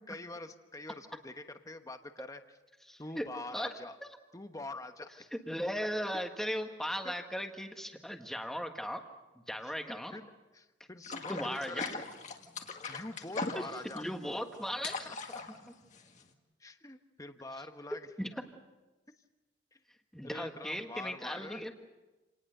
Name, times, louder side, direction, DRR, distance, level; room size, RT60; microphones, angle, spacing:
voice 1, 0.1-2.6 3.0-4.0 4.3-5.2 7.0-7.1 9.6-12.1 12.3-12.4 12.9-14.1 15.0-15.4 16.6-18.1 19.7-19.8 20.2-21.6, left 2 dB, 20° left, 8 dB, 1.0 m, -45 dB
voice 2, 2.9-3.3 3.5-3.7 4.0-4.1 5.3-9.0 9.5-10.2 11.3-11.8 13.5-13.7 13.9-15.1 18.2-18.4 20.1-21.7, equal, ahead, 5 dB, 1.6 m, -37 dB
sound 1, 11.0-16.3, left 3 dB, 40° left, 1.8 m, -40 dB
28.5 x 19.0 x 6.7 m, 1.1 s
head